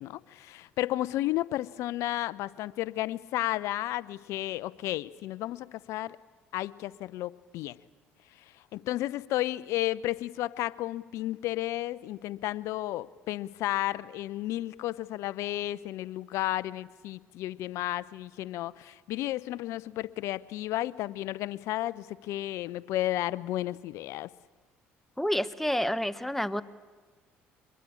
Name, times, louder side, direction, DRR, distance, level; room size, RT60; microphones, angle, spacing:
voice 1, 0.0-6.2 6.5-7.8 8.7-24.3, left 15 dB, 70° left, 19 dB, 0.7 m, -33 dB
voice 2, 25.2-26.6, equal, 5° left, 15 dB, 1.2 m, -29 dB
24.0 x 21.5 x 8.6 m, 1.4 s
hypercardioid pair, 65°, 5 cm